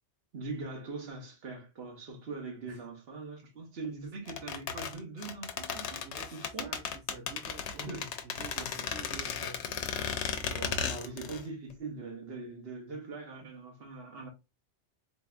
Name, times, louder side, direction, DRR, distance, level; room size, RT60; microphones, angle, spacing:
voice 1, 0.3-6.0 6.3-6.8 7.8-8.1 8.5-8.9 10.5-14.3, right 3 dB, 60° right, 1.3 m, -42 dB
sound 1, 4.3-11.4 11.7-11.8, left 7 dB, 75° left, 0.9 m, -35 dB
voice 2, 6.0-9.9 10.4-11.0, right 4 dB, 80° right, 1.1 m, -49 dB
3.9 x 3.4 x 2.5 m
omnidirectional pair, 1.2 m